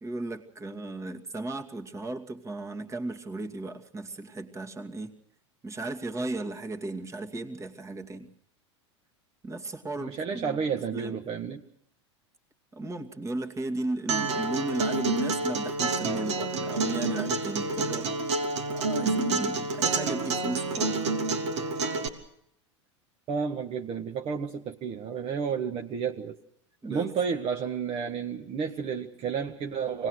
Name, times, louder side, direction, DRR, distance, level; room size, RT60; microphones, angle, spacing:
voice 1, 0.0-5.1 5.6-8.3 9.4-11.2 12.7-18.2 18.7-21.0 26.8-27.1, right 2 dB, 20° right, 5 dB, 2.5 m, -35 dB
voice 2, 10.0-11.6 23.3-26.4 26.9-30.1, right 6 dB, 40° right, 3 dB, 1.7 m, -31 dB
Acoustic guitar, 14.1-22.1, right 3 dB, 70° right, 3.1 m, -28 dB
25.0 x 19.5 x 6.5 m, 0.73 s
hypercardioid pair, 90°, 15 cm